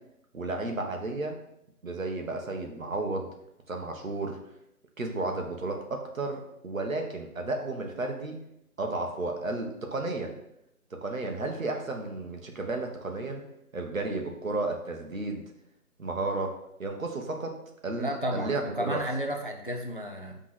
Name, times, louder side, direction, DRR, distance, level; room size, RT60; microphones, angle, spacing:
voice 1, 0.3-1.4 1.8-3.3 3.7-4.4 5.0-8.4 8.8-10.3 10.9-13.4 13.7-15.4 16.0-16.5 16.8-17.6 17.8-19.0, right 2 dB, 65° right, 3 dB, 1.4 m, -33 dB
voice 2, 18.0-20.4, equal, 35° left, 3 dB, 0.5 m, -32 dB
6.4 x 3.6 x 6.1 m, 0.80 s
figure-of-eight pair, 175°, 45 cm